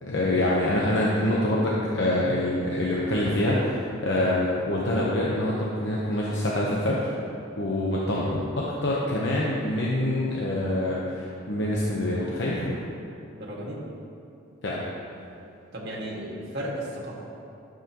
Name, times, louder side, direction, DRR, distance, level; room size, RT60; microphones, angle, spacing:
voice 1, 0.0-7.1 7.6-12.8 14.6-14.8, left 1 dB, 60° left, -5 dB, 0.9 m, -25 dB
voice 2, 13.3-13.8 15.7-17.2, right 1 dB, 55° right, -4 dB, 1.9 m, -34 dB
12.0 x 7.5 x 3.0 m, 2.6 s
head